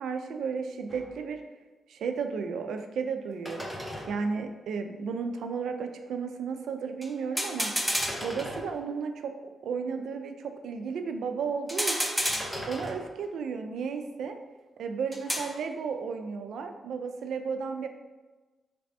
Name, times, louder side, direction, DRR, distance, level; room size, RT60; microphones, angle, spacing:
voice 1, 0.0-1.4 1.9-3.6 4.1-7.7 8.2-9.3 9.6-12.2 12.7-14.4 14.8-17.9, right 5 dB, 80° right, 6 dB, 0.3 m, -33 dB
sound 1, 0.9-1.1 3.5-4.4 7.0-7.1 7.4-9.1 11.7-13.3 15.1-15.6, equal, ahead, 0.6 m, -32 dB
3.3 x 2.6 x 3.2 m, 1.2 s
cardioid pair, 90°, 0 cm